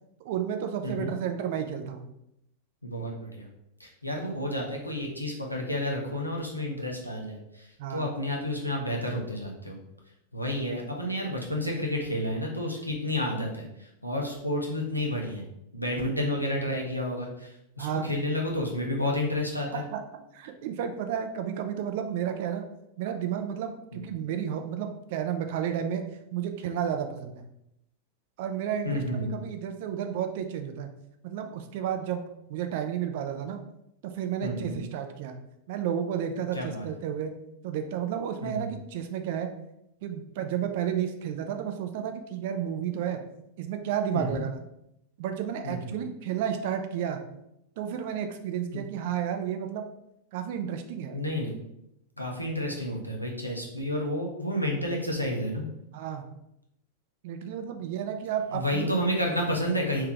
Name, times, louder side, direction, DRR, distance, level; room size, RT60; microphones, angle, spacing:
voice 1, 0.2-2.1 7.8-8.1 17.8-18.1 19.7-20.0 20.3-22.6 23.0-26.0 26.3-27.5 28.4-30.9 31.2-32.2 32.5-33.6 34.0-35.4 35.7-37.3 37.6-39.5 40.0-43.2 43.6-44.6 45.2-47.2 47.8-49.9 50.3-51.2 55.9-56.3 57.2-58.9, right 9 dB, 50° right, 6 dB, 0.4 m, -32 dB
voice 2, 0.8-1.1 2.8-3.5 3.8-9.8 10.3-15.5 15.7-19.8 23.9-24.1 28.8-29.3 34.4-34.8 36.5-36.9 38.4-38.7 44.1-44.4 45.6-45.9 48.7-48.8 51.1-51.5 52.2-55.7 58.5-60.1, left 1 dB, 90° left, -1 dB, 0.8 m, -30 dB
3.5 x 2.8 x 3.4 m, 0.81 s
figure-of-eight pair, 90°, 0 cm